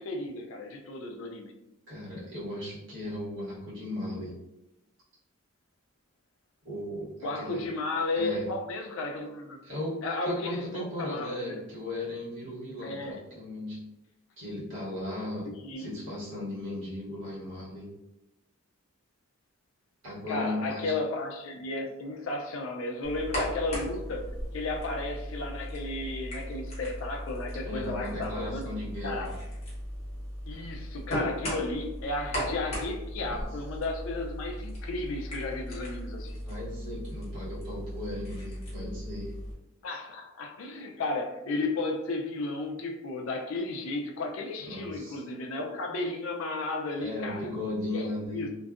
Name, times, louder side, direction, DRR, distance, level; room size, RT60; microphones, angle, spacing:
voice 1, 0.0-1.5 7.2-9.6 10.0-11.6 12.8-13.2 15.5-15.9 20.3-28.7 29.0-29.3 30.5-36.4 39.8-47.4 47.9-48.5, left 2 dB, 70° left, 3 dB, 0.4 m, -34 dB
voice 2, 1.9-4.3 6.6-7.6 8.1-8.5 9.6-13.8 14.4-15.5 15.8-17.9 20.0-20.9 27.6-29.3 33.2-33.5 36.3-39.3 44.6-45.2 47.0-48.5, left 1 dB, 60° right, -9 dB, 1.3 m, -36 dB
sound 1, 23.0-39.5, equal, 30° left, 0.8 m, -37 dB
2.5 x 2.2 x 2.4 m, 0.93 s
head